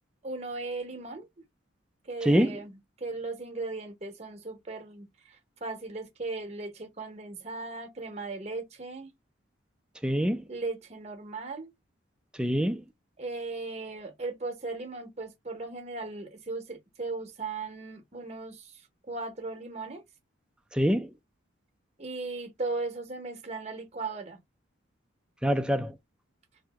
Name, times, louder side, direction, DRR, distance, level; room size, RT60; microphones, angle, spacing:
voice 1, 0.2-1.3 2.1-5.4 5.6-9.1 10.5-11.7 13.2-18.7 19.1-20.0 22.0-24.4, right 3 dB, 35° right, 0.8 m, -37 dB
voice 2, 2.2-2.6 10.0-10.4 12.4-12.8 20.7-21.1 25.4-25.9, equal, 5° right, 0.4 m, -25 dB
2.8 x 2.5 x 3.4 m
head